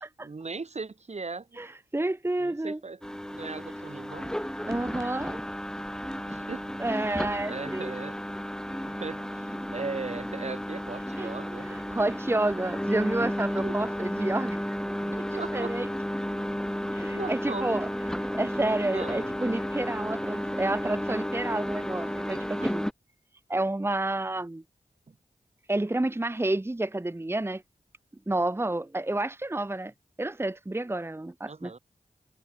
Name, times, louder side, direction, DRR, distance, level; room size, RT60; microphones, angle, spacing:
voice 1, 0.2-1.6 2.4-3.0 3.3-4.4 6.3-6.7 7.0-7.1 7.4-8.2 8.9-11.8 13.6-13.8 15.0-15.7 17.1-17.8 18.9-19.3 22.6-22.7 25.1-25.2 31.5-31.8, right 4 dB, 50° right, 1.8 m, -38 dB
voice 2, 1.6-2.8 4.6-5.4 6.8-7.9 11.2-11.3 11.7-14.7 15.1-15.9 16.9-17.9 18.3-22.9 23.5-24.6 25.7-27.6 28.3-29.9 30.2-31.7, right 2 dB, 15° right, 0.9 m, -30 dB
sound 1, 3.0-22.9, equal, 5° left, 1.6 m, -33 dB
cardioid pair, 45°, 14 cm